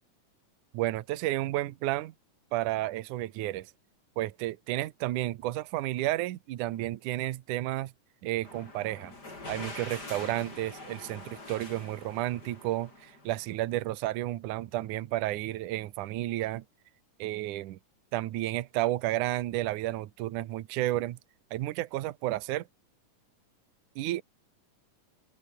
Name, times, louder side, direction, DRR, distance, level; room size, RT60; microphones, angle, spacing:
voice 1, 0.7-2.1 2.5-3.7 4.2-7.9 8.2-9.1 9.5-16.6 17.2-17.8 18.1-21.2 21.5-22.7 24.0-24.2, right 16 dB, 75° right, 2.4 m, -32 dB
sound 1, 8.4-13.6, left 2 dB, 30° left, 6.2 m, -45 dB
open air
omnidirectional pair, 3.8 m